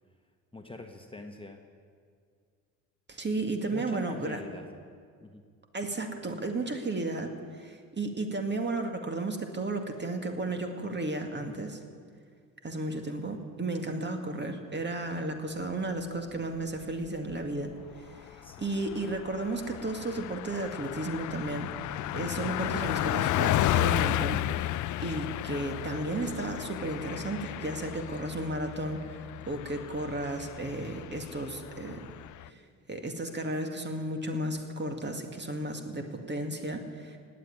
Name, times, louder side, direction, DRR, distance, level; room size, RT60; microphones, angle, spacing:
voice 1, 0.5-1.6 3.7-4.6 5.2-5.4 13.8-14.1 18.4-18.7, left 2 dB, 15° left, 3 dB, 1.4 m, -44 dB
voice 2, 3.1-4.4 5.7-7.3 7.6-11.8 12.6-21.7 22.1-24.7 25.0-32.1 32.5-32.6 32.9-37.2, right 2 dB, 25° right, 5 dB, 2.2 m, -34 dB
Car passing by, 16.8-17.4 17.8-17.9 18.2-32.5, left 15 dB, 50° left, 0.5 m, -33 dB
18.5 x 8.0 x 9.7 m, 2.1 s
hypercardioid pair, 55°, 40 cm